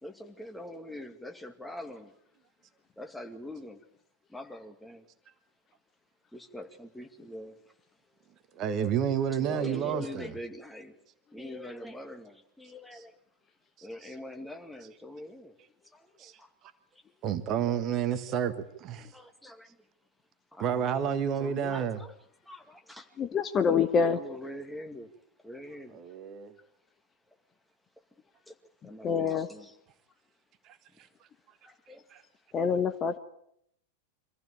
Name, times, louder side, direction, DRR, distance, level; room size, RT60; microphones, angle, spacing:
voice 1, 0.0-2.1 3.0-3.8 4.3-5.0 6.3-7.6 9.3-11.0 11.3-13.1 13.8-15.5 15.9-16.5 19.1-19.7 20.5-20.9 21.4-22.1 22.4-23.1 23.6-25.1 25.4-26.0 28.5-28.6 28.8-29.8 31.6-32.0, left 1 dB, 5° left, 4 dB, 2.3 m, -43 dB
voice 2, 8.6-10.3 13.8-13.9 16.2-16.3 17.2-18.5 18.8-19.1 20.6-22.0 25.9-26.5 32.1-32.2, right 8 dB, 35° right, 11 dB, 1.5 m, -30 dB
voice 3, 23.2-24.2 29.0-29.5 32.5-33.2, left 6 dB, 25° left, 10 dB, 1.1 m, -26 dB
25.0 x 15.0 x 8.9 m, 0.74 s
figure-of-eight pair, 90°, 0 cm